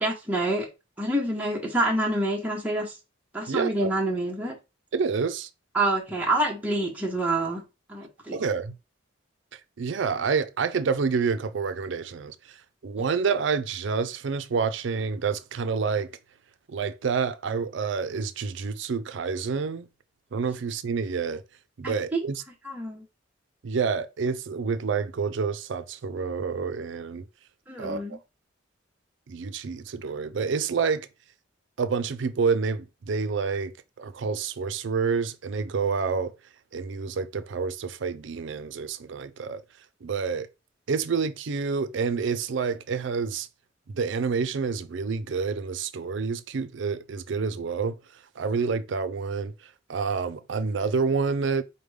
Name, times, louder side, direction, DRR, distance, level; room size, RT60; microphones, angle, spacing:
voice 1, 0.0-0.7 1.0-2.9 3.3-4.5 5.7-7.6 7.9-8.4 21.8-22.2 22.6-23.0 27.7-28.2, right 1 dB, 10° right, 0.9 m, -27 dB
voice 2, 3.5-3.9 4.9-5.5 8.3-8.8 9.5-16.1 16.7-19.9 20.3-21.4 21.8-22.4 23.6-27.3 27.8-28.2 29.3-31.1 31.8-36.3 36.7-39.6 40.0-40.5 40.9-43.5 43.9-51.6, right 5 dB, 65° right, 0.4 m, -28 dB
5.0 x 2.2 x 3.2 m
head